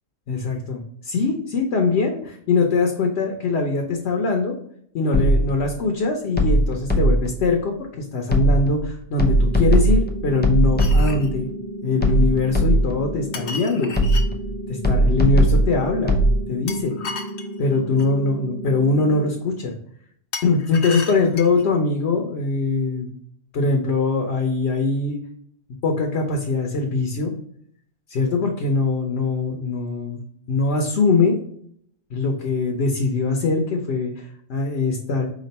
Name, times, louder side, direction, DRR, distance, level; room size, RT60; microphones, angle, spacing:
voice 1, 0.3-4.5 4.9-11.5 11.8-13.9 14.7-16.2 16.5-17.0 17.6-19.7 20.4-23.2 23.5-25.2 25.8-27.3 28.1-30.2 30.5-31.4 32.1-35.3, left 3 dB, 60° left, 1 dB, 1.0 m, -22 dB
sound 1, 5.1-5.7 6.4-7.4 8.3-8.8 9.2-11.3 12.0-13.1 14.0-14.5 14.8-16.3, right 1 dB, 15° left, 0.3 m, -18 dB
sound 2, 9.3-19.3, right 1 dB, 65° right, 2.2 m, -34 dB
sound 3, 10.8-11.3 13.3-14.3 16.7-18.1 20.3-21.7, left 4 dB, 85° left, 1.2 m, -34 dB
5.1 x 2.4 x 4.0 m, 0.66 s
omnidirectional pair, 1.3 m